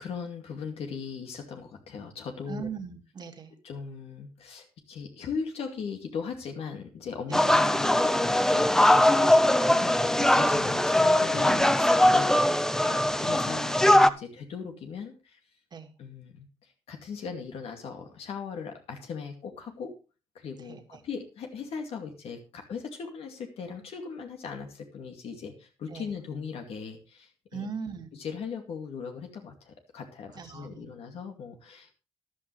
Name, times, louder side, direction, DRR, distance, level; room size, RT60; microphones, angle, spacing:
voice 1, 0.0-2.7 3.6-15.4 16.0-19.9 20.3-27.7 28.2-31.9, left 6 dB, 75° left, 3 dB, 2.4 m, -39 dB
voice 2, 2.5-3.5 7.3-7.4 11.4-11.7 12.8-13.3 15.7-15.9 20.7-21.0 25.9-26.1 27.5-28.1 30.4-30.9, right 6 dB, 45° right, 4 dB, 2.0 m, -39 dB
sound 1, 7.3-14.1, left 1 dB, 5° left, 0.6 m, -21 dB
14.0 x 11.5 x 3.3 m, 0.32 s
cardioid pair, 130°, 10 cm